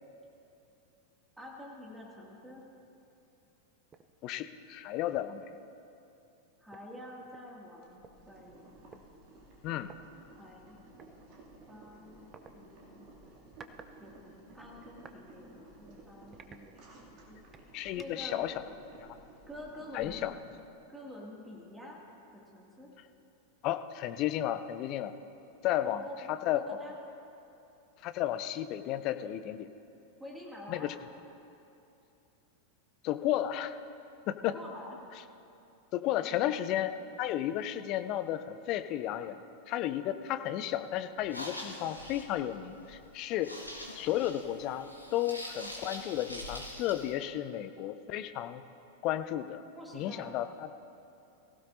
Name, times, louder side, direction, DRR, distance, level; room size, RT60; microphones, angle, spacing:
voice 1, 1.4-2.6 6.6-8.7 10.3-10.8 11.7-13.1 14.0-17.4 18.0-18.4 19.5-20.3 20.9-22.0 22.3-22.9 25.9-27.0 30.2-30.9 34.5-35.1 36.2-36.6 49.7-50.3, left 1 dB, 5° right, -2 dB, 2.2 m, -48 dB
sound 1, 3.9-4.1 4.6-4.7 5.1-5.4 6.4-6.5 6.7-8.1 8.9-9.1 9.8-10.0 11.0-11.2 12.3-12.5 13.3-13.9 14.3-15.2 15.7-15.8 16.3-17.1 17.5-18.3, right 5 dB, 25° right, 0.7 m, -54 dB
voice 2, 4.2-5.5 9.6-9.9 17.7-18.5 19.0-19.2 19.9-20.3 23.6-25.2 25.6-26.6 28.0-29.7 30.7-30.9 33.0-33.8 34.3-34.5 35.9-36.9 37.2-39.4 39.7-43.5 44.0-48.6 49.0-49.6 49.9-50.7, left 12 dB, 40° left, 10 dB, 0.6 m, -33 dB
Boiling, 7.8-20.5, right 2 dB, 40° right, 2.5 m, -55 dB
sound 2, 41.2-47.2, left 1 dB, 85° left, 1.5 m, -44 dB
23.0 x 16.0 x 2.7 m, 2.8 s
figure-of-eight pair, 90°, 0 cm